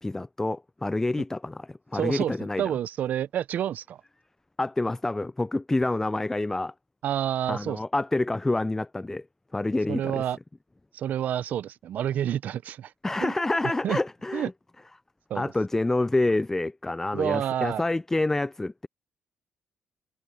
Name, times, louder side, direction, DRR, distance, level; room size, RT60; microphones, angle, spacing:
voice 1, 0.0-2.6 4.6-6.7 7.5-9.2 9.5-10.2 13.0-14.5 15.3-18.9, left 2 dB, 15° left, 0.4 m, -27 dB
voice 2, 1.9-4.0 7.0-7.8 9.9-10.4 10.9-12.9 13.2-13.3 13.8-14.0 14.3-14.5 15.3-15.5 17.1-17.8, right 10 dB, 70° right, 0.6 m, -29 dB
cardioid pair, 75°, 3 cm